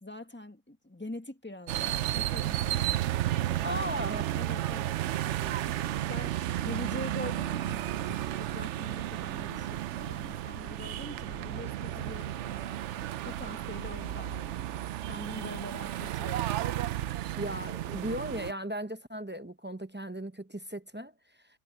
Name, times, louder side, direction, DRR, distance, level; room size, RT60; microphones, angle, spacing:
voice 1, 0.0-2.8 3.3-4.0 4.3-5.0 5.3-12.8 13.2-16.5, left 1 dB, 10° left, 1.5 m, -44 dB
sound 1, 1.7-18.5, right 13 dB, 75° right, 0.9 m, -33 dB
voice 2, 3.6-4.2 17.4-21.1, equal, 15° right, 0.5 m, -36 dB
sound 2, 5.2-14.4, right 2 dB, 60° right, 3.1 m, -50 dB
omnidirectional pair, 1.2 m